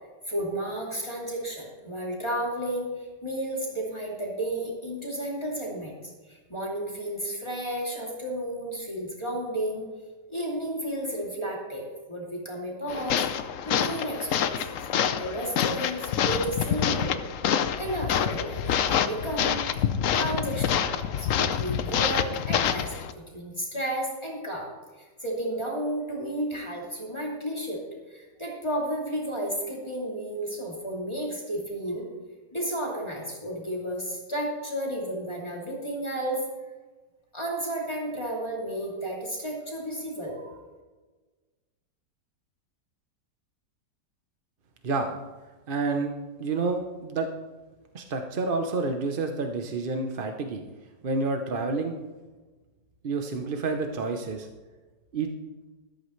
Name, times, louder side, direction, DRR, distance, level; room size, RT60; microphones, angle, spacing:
voice 1, 0.3-9.9 10.3-14.5 14.9-17.2 17.8-19.9 20.1-27.8 28.1-32.1 32.5-36.4 37.3-40.6, right 1 dB, 15° left, -4 dB, 2.8 m, -32 dB
sound 1, 12.9-23.1, left 8 dB, 60° left, 0.9 m, -27 dB
voice 2, 45.7-46.1 46.4-47.3 47.9-50.6 51.0-52.0 53.0-54.5 55.1-55.3, right 3 dB, 45° right, 5 dB, 0.7 m, -29 dB
14.0 x 13.5 x 3.2 m, 1.3 s
omnidirectional pair, 1.9 m